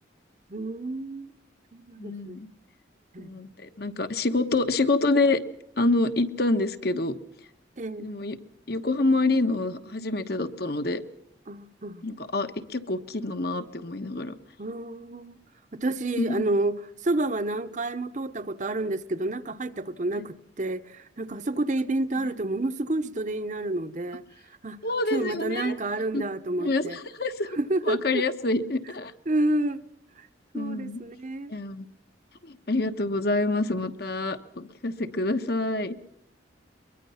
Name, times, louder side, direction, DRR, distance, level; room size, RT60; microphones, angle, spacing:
voice 1, 0.5-1.3 1.7-2.5 3.1-3.3 7.8-8.1 11.5-12.0 14.6-15.3 15.7-16.8 17.0-24.2 24.6-24.8 25.1-27.0 27.5-28.2 29.3-29.8 30.2-30.3 30.5-31.5, right 2 dB, 40° right, 0.9 m, -29 dB
voice 2, 2.0-2.5 3.2-5.4 5.8-7.1 8.0-8.4 8.7-11.0 12.0-14.3 16.2-16.4 24.8-25.8 26.1-26.2 26.6-27.5 27.8-29.1 30.5-31.0 31.5-31.9 32.4-36.0, left 2 dB, 55° left, 1.2 m, -27 dB
23.0 x 22.0 x 5.7 m
head